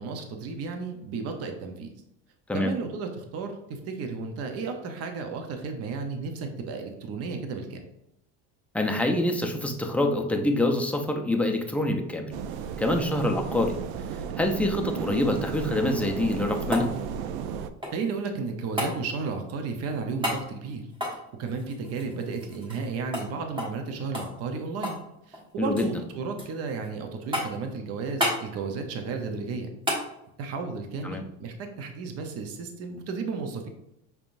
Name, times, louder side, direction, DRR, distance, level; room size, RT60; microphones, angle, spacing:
voice 1, 0.0-1.9 2.5-7.8 17.9-25.0 25.3-29.7 30.4-33.7, right 4 dB, 50° right, 5 dB, 0.8 m, -33 dB
voice 2, 8.7-12.3 12.8-13.7 14.4-16.9 25.6-25.9 31.0-31.2, left 1 dB, 5° left, 2 dB, 0.4 m, -26 dB
sound 1, 12.3-17.7, right 7 dB, 80° right, 0.5 m, -34 dB
sound 2, 16.2-18.2 18.8-19.0 20.2-20.4 20.9-22.9 23.1-23.3 23.6-23.8 24.1-25.1 25.3-25.9 26.4-26.9 27.3-27.7 28.2-28.4 29.9-30.1 32.4-32.5, left 1 dB, 15° right, 1.1 m, -31 dB
5.8 x 3.5 x 2.5 m, 0.84 s
cardioid pair, 135°, 32 cm